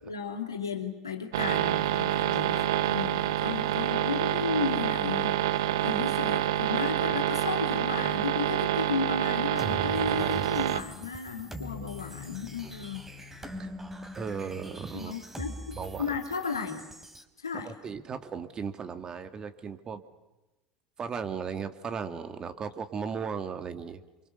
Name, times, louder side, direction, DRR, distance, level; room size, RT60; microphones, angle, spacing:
voice 1, 0.0-5.4 5.8-13.0 14.9-16.9 17.4-17.7, left 5 dB, 90° left, 3 dB, 2.8 m, -34 dB
sound 1, 1.3-10.8, right 12 dB, 75° right, 0.8 m, -27 dB
sound 2, 9.6-17.2, equal, 15° right, 3.5 m, -42 dB
voice 2, 14.1-15.1 15.7-16.1 17.6-20.0 21.0-24.0, right 6 dB, 35° right, 9 dB, 2.2 m, -36 dB
28.5 x 25.0 x 6.9 m, 1.0 s
hypercardioid pair, 70°, 2 cm